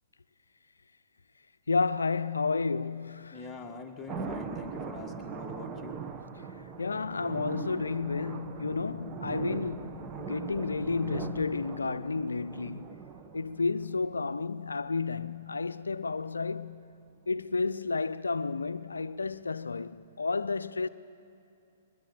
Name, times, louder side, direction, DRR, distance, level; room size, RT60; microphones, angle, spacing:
voice 1, 1.7-3.6 6.6-13.0 13.3-16.8 17.3-20.9, left 4 dB, 80° left, 0.5 m, -31 dB
voice 2, 3.3-6.0, left 3 dB, 15° left, 1.7 m, -44 dB
sound 1, 4.1-14.1 16.4-16.5, right 5 dB, 25° right, 1.3 m, -40 dB
21.5 x 20.5 x 8.6 m
figure-of-eight pair, 115°, 0 cm